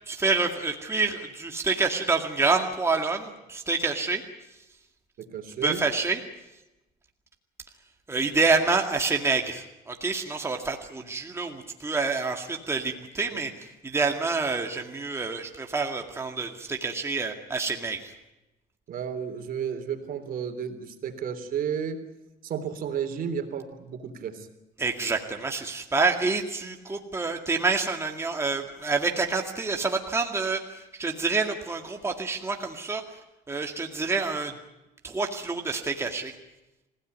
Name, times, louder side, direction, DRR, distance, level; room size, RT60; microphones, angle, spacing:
voice 1, 0.1-4.2 5.6-6.2 8.1-18.1 24.8-33.0 33.5-34.6 35.0-36.4, right 4 dB, 15° right, 2 dB, 2.2 m, -27 dB
voice 2, 5.2-5.8 13.2-13.4 18.9-22.0 22.4-24.5, right 7 dB, 60° right, 7 dB, 3.3 m, -32 dB
26.5 x 16.5 x 9.5 m, 0.98 s
cardioid pair, 110°, 17 cm